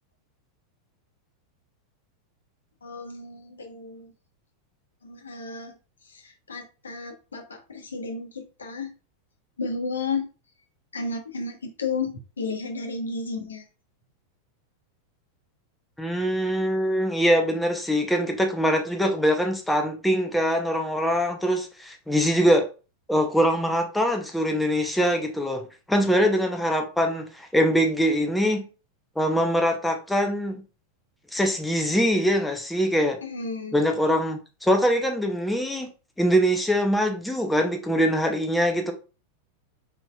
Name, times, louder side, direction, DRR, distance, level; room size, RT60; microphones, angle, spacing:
voice 1, 2.8-4.1 5.0-5.7 6.0-8.9 9.6-10.3 10.9-13.6 33.2-33.8, left 4 dB, 70° left, 1.0 m, -33 dB
voice 2, 16.0-22.7 23.1-28.6 29.2-30.6 31.3-33.2 33.7-35.9 36.2-38.9, equal, 5° left, 0.8 m, -23 dB
4.5 x 4.0 x 2.4 m
figure-of-eight pair, 90°, 0 cm